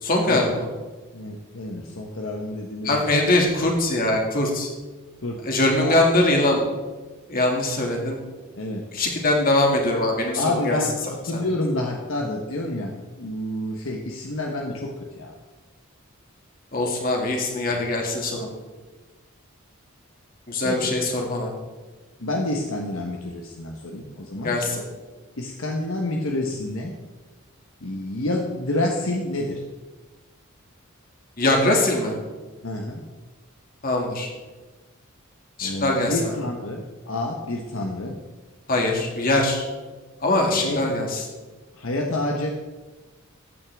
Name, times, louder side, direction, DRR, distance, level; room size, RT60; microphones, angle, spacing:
voice 1, 0.0-0.7 2.8-4.7 5.5-6.6 7.3-8.2 8.9-10.8 11.3-11.4 16.7-18.5 20.5-21.5 24.4-24.8 31.4-32.1 33.8-34.3 35.6-36.1 38.7-39.7 40.2-41.2, left 2 dB, 40° left, 0 dB, 2.2 m, -22 dB
voice 2, 1.1-3.2 5.2-5.4 5.8-6.0 8.6-8.8 10.3-15.3 17.7-17.8 20.6-20.9 22.2-24.6 25.4-27.0 27.8-29.6 32.6-33.0 35.6-38.2 40.5-40.9 41.7-42.5, left 1 dB, 65° left, 1 dB, 1.1 m, -28 dB
14.5 x 9.2 x 3.5 m, 1.3 s
head